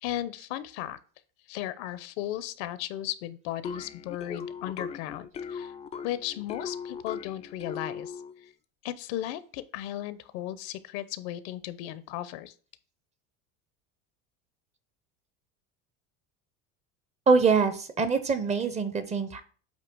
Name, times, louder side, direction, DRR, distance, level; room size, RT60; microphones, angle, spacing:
voice 1, 0.0-1.0 1.5-5.7 6.0-8.2 8.4-8.5 8.8-12.5, left 13 dB, 70° left, 15 dB, 0.8 m, -35 dB
sound 1, 3.6-8.4, left 6 dB, 20° left, 0.3 m, -39 dB
voice 2, 17.3-19.4, right 5 dB, 20° right, 11 dB, 0.7 m, -24 dB
8.3 x 2.9 x 6.0 m, 0.41 s
cardioid pair, 140°, 33 cm